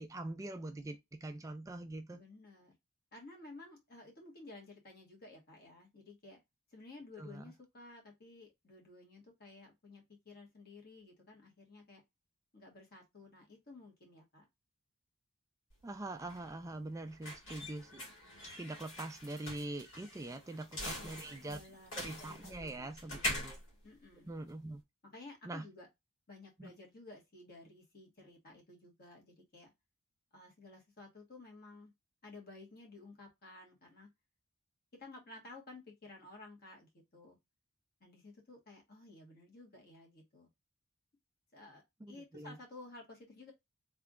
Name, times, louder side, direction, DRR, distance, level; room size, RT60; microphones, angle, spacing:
voice 1, 0.0-2.2 7.2-7.4 15.8-18.0 18.6-21.6 22.0-23.6 24.2-24.8 25.4-25.7 26.6-26.7 42.0-42.6, right 2 dB, 15° right, 0.3 m, -43 dB
voice 2, 2.1-2.7 3.1-6.4 6.7-12.0 12.5-14.5 20.9-23.4 23.8-24.3 25.0-25.9 26.3-29.7 30.3-31.9 32.2-34.1 35.0-37.4 38.0-40.5 41.5-41.8 42.1-43.5, left 2 dB, 50° left, 1.4 m, -54 dB
sound 1, 15.7-24.8, left 1 dB, 70° left, 2.1 m, -44 dB
3.8 x 3.4 x 2.4 m
head